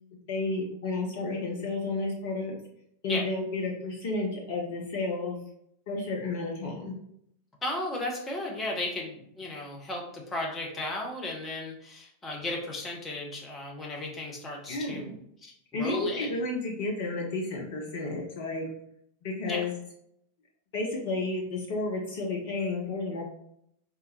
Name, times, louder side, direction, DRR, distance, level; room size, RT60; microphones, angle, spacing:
voice 1, 0.3-2.5 3.0-5.4 5.9-6.9 14.7-15.1 15.7-18.7 19.2-19.7 20.7-23.2, left 2 dB, 50° left, -1 dB, 0.6 m, -31 dB
voice 2, 7.6-15.1 15.4-16.4 19.5-19.6, left 2 dB, 15° left, 0 dB, 0.9 m, -35 dB
3.7 x 2.8 x 2.7 m, 0.73 s
figure-of-eight pair, 90°, 0 cm